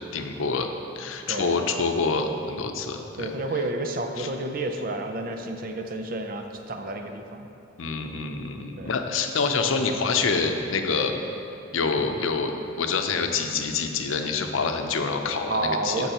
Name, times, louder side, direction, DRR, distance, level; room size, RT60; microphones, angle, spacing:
voice 1, 0.1-0.7 1.0-3.3 4.2-4.3 7.8-11.2 11.7-16.1, left 4 dB, 85° left, 5 dB, 0.6 m, -26 dB
voice 2, 1.3-1.7 3.2-7.5 8.8-8.9 15.5-16.1, right 2 dB, 45° right, 5 dB, 0.6 m, -30 dB
13.5 x 5.4 x 3.0 m, 3.0 s
head